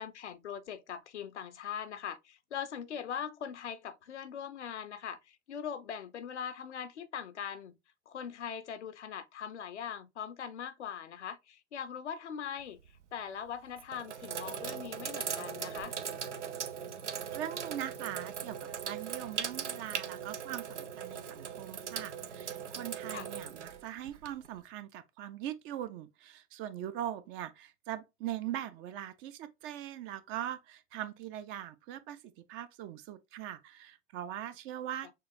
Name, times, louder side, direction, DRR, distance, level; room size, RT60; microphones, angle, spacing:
voice 1, 0.0-7.7 8.1-12.8 13.1-15.9 23.1-23.3, left 8 dB, 80° left, 0.6 m, -41 dB
Sink (filling or washing), 12.6-13.0 13.7-24.6, right 7 dB, 85° right, 0.6 m, -39 dB
voice 2, 17.3-35.1, right 11 dB, 35° right, 0.5 m, -41 dB
6.2 x 2.4 x 2.6 m
figure-of-eight pair, 85°, 34 cm